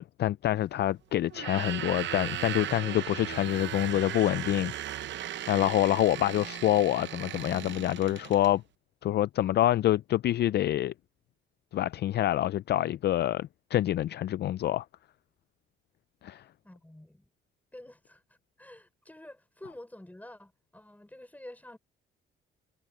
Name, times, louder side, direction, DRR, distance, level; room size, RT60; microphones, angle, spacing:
voice 1, 0.0-4.7 5.5-8.6 9.0-10.9 11.7-14.9 16.2-16.4, left 13 dB, 55° left, 0.4 m, -26 dB
sound 1, 1.3-8.5, right 12 dB, 65° right, 0.8 m, -37 dB
voice 2, 16.6-17.2 17.7-18.2 18.6-21.8, left 1 dB, 10° left, 6.1 m, -48 dB
cardioid pair, 90°, 20 cm